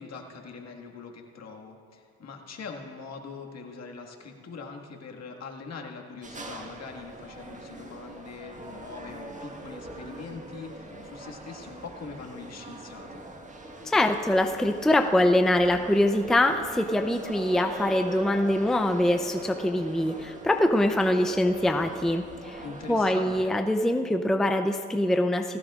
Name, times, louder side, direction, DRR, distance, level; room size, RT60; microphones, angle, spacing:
voice 1, 0.0-13.3 22.6-23.5, left 4 dB, 60° left, 1 dB, 1.8 m, -42 dB
sound 1, 6.2-23.4, right 2 dB, 25° right, 1.5 m, -42 dB
voice 2, 13.8-22.6 22.9-25.6, left 1 dB, ahead, 5 dB, 0.5 m, -24 dB
19.0 x 16.5 x 2.4 m, 2.2 s
cardioid pair, 90°, 30 cm